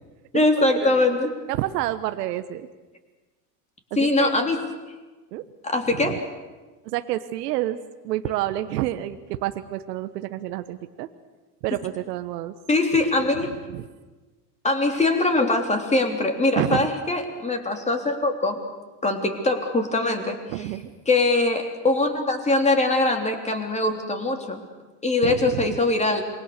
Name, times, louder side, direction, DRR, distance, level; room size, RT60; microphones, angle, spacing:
voice 1, 0.3-1.3 4.0-4.6 5.6-6.3 12.7-13.5 14.6-18.6 19.0-20.4 21.1-24.6 25.0-26.2, left 2 dB, 15° left, 4 dB, 3.4 m, -22 dB
voice 2, 1.5-2.7 3.9-4.3 5.3-5.5 5.9-6.2 6.8-7.8 8.0-11.1 11.6-12.5 13.4-13.8 16.6-16.9 20.5-20.9 25.2-25.8, right 14 dB, 75° right, 10 dB, 1.2 m, -29 dB
27.0 x 22.0 x 6.7 m, 1.3 s
supercardioid pair, 115°, 49 cm